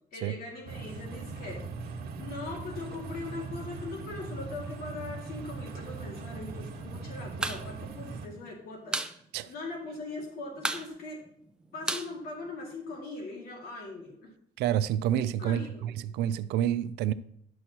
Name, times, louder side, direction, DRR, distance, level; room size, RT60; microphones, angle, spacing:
voice 1, 0.1-1.6 2.2-9.0 9.5-11.2 11.7-14.3 15.4-16.0, left 3 dB, 65° left, 2.2 m, -40 dB
sound 1, 0.7-8.3, right 4 dB, 65° right, 1.5 m, -40 dB
sound 2, 7.4-7.6 7.9-8.0 8.3-9.2 9.5-9.6 9.8-10.2 10.6-13.0, right 2 dB, 5° right, 0.5 m, -33 dB
voice 2, 14.6-17.1, right 10 dB, 80° right, 0.5 m, -28 dB
10.5 x 6.2 x 2.9 m
cardioid pair, 110°, 17 cm